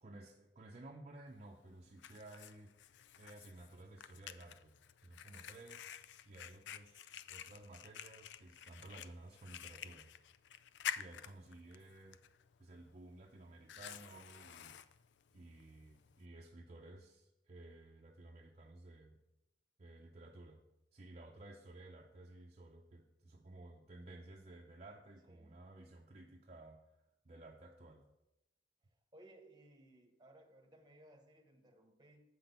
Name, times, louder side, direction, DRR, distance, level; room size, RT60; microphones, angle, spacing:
voice 1, 0.0-2.7 3.2-4.8 5.0-5.9 6.2-10.1 10.9-12.2 12.6-14.8 15.3-19.2 19.8-20.6 20.9-26.8 27.2-28.0, right 2 dB, 40° right, 0 dB, 0.6 m, -55 dB
Fire, 1.3-16.3, left 9 dB, 80° left, 0.4 m, -50 dB
voice 2, 25.3-25.6 29.1-32.2, right 1 dB, 25° right, 3 dB, 1.1 m, -62 dB
7.6 x 6.0 x 5.3 m, 0.92 s
head